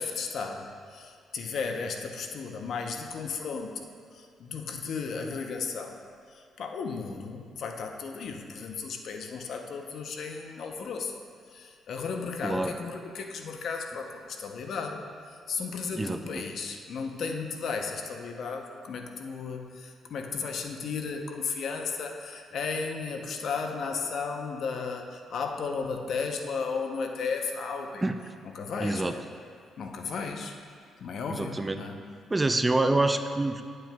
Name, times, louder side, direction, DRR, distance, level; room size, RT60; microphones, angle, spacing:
voice 1, 0.0-3.9 4.1-6.0 6.3-11.2 11.5-28.0 28.4-29.2 29.8-30.6 31.0-32.0, left 5 dB, 65° left, 4 dB, 0.7 m, -34 dB
voice 2, 16.0-16.4 28.0-28.2 28.8-29.2 31.3-31.8 32.3-33.6, right 2 dB, 20° right, 8 dB, 0.3 m, -26 dB
10.5 x 7.6 x 2.2 m, 2.1 s
cardioid pair, 90°, 0 cm